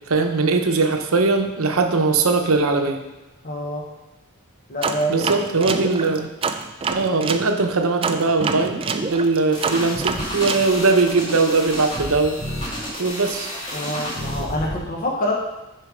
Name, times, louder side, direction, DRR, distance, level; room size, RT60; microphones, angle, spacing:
voice 1, 0.1-3.0 5.1-6.3 6.9-12.4 13.0-13.5, right 3 dB, 65° right, 5 dB, 0.8 m, -20 dB
voice 2, 3.4-3.9 4.7-5.7 13.7-15.3, equal, 40° left, -1 dB, 0.9 m, -26 dB
sound 1, 4.8-7.5 8.0-10.7, right 5 dB, 25° right, 0.3 m, -26 dB
sound 2, 9.5-14.8, equal, 25° left, 1.9 m, -30 dB
6.5 x 4.8 x 4.9 m, 1.1 s
head